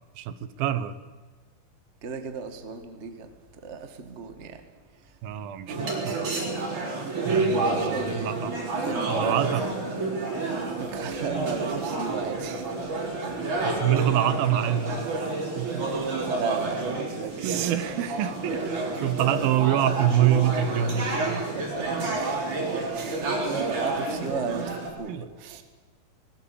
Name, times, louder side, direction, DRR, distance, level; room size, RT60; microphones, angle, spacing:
voice 1, 0.2-1.0 5.2-5.8 6.0-6.7 7.2-8.5 9.1-9.6 13.4-15.1 15.5-15.9 17.4-21.4 25.1-25.3, right 11 dB, 80° right, 14 dB, 2.8 m, -26 dB
voice 2, 2.0-4.6 5.0-5.1 7.6-8.4 8.7-9.5 10.7-12.6 15.8-17.7 21.5-21.9 22.1-25.6, right 5 dB, 35° right, 7 dB, 1.0 m, -35 dB
sound 1, 5.7-24.9, right 3 dB, 55° right, 5.2 m, -29 dB
20.5 x 18.0 x 8.6 m, 1.4 s
omnidirectional pair, 4.2 m